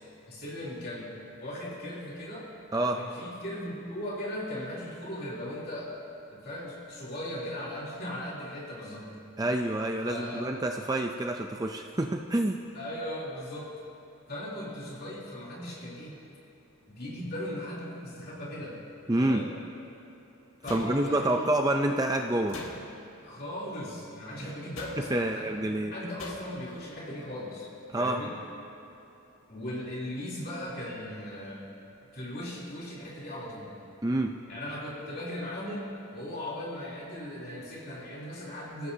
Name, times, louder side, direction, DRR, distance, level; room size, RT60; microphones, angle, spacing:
voice 1, 0.3-2.5 2.9-5.9 6.3-9.1 10.0-10.4 12.7-13.7 14.3-16.2 16.9-18.8 19.1-19.5 20.6-21.5 23.2-27.7 28.0-28.3 29.5-31.7 32.1-33.7 34.5-38.9, left 1 dB, 45° left, -6 dB, 3.3 m, -38 dB
voice 2, 9.4-12.6 19.1-19.4 20.7-22.6 25.1-25.9 27.9-28.2 34.0-34.3, right 1 dB, 15° right, 3 dB, 0.5 m, -27 dB
sound 1, 20.7-21.4 22.5-23.2 24.8-25.3 26.2-26.7, left 2 dB, 75° left, 1.9 m, -43 dB
26.0 x 16.0 x 2.8 m, 2.9 s
head